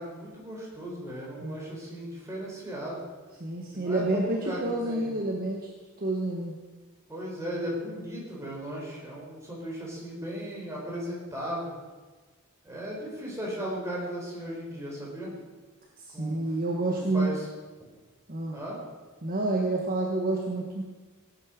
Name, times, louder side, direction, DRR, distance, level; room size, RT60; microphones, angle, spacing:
voice 1, 0.0-3.0 3.7-5.1 7.1-11.7 12.6-15.3 16.1-16.4 17.1-17.5 18.5-18.8, equal, 15° right, -4 dB, 4.3 m, -36 dB
voice 2, 3.4-5.6 6.0-6.5 16.1-17.3 18.3-18.6 19.2-20.8, right 2 dB, 45° right, -1 dB, 1.4 m, -28 dB
17.0 x 9.2 x 5.2 m, 1.3 s
head